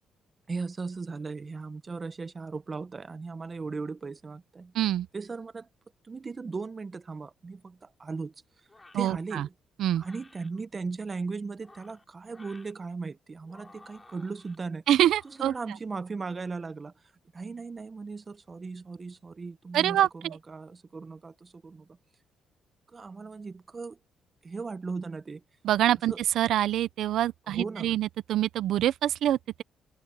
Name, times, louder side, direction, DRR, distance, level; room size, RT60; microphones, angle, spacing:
voice 1, 0.5-4.7 5.1-5.7 6.0-8.3 8.9-9.5 9.9-14.8 15.2-16.9 17.3-21.9 22.9-24.0 24.4-25.4 26.1-26.2 27.5-27.9, right 4 dB, 30° right, 0.9 m, -37 dB
voice 2, 4.7-5.1 8.9-9.5 9.8-10.0 14.9-15.5 19.7-20.1 25.6-29.6, right 12 dB, 80° right, 0.6 m, -25 dB
sound 1, 8.7-9.1 10.0-10.5 11.5-12.7 13.4-14.6 15.0-15.6, left 2 dB, 20° left, 7.7 m, -55 dB
cardioid pair, 90°, 0 cm